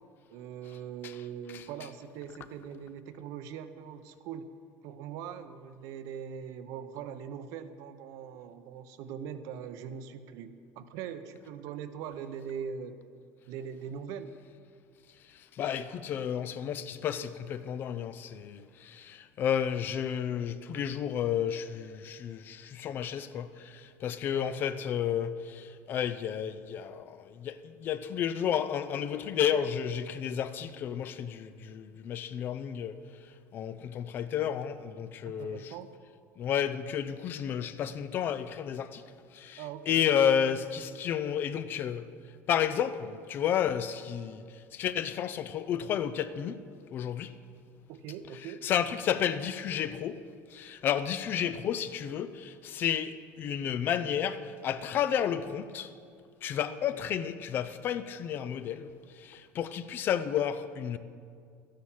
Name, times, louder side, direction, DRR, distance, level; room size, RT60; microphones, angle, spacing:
voice 1, 0.3-4.5 4.8-13.0 13.5-14.4 24.3-24.6 35.2-35.9 39.6-40.0 47.9-48.7 56.7-56.8, right 8 dB, 60° right, 0.8 m, -41 dB
voice 2, 15.6-32.9 33.5-35.6 36.4-39.0 39.3-39.6 39.9-42.1 42.5-44.4 44.7-46.6 46.9-47.3 48.6-50.2 50.5-55.9 56.4-58.9 59.2-61.0, left 9 dB, 35° left, 0.5 m, -31 dB
12.5 x 10.5 x 7.2 m
cardioid pair, 170°, 6 cm